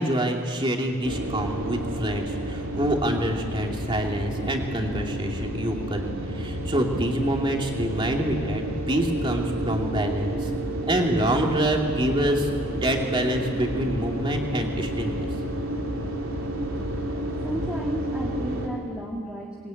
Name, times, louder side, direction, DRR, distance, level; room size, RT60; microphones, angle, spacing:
voice 1, 0.0-10.5 10.9-12.5 12.7-15.3, right 1 dB, 25° right, 1 dB, 2.7 m, -26 dB
sound 1, 1.0-18.7, right 1 dB, 70° right, 3.3 m, -30 dB
voice 2, 17.4-19.7, equal, 5° right, -2 dB, 1.7 m, -33 dB
24.5 x 22.0 x 9.2 m, 2.3 s
head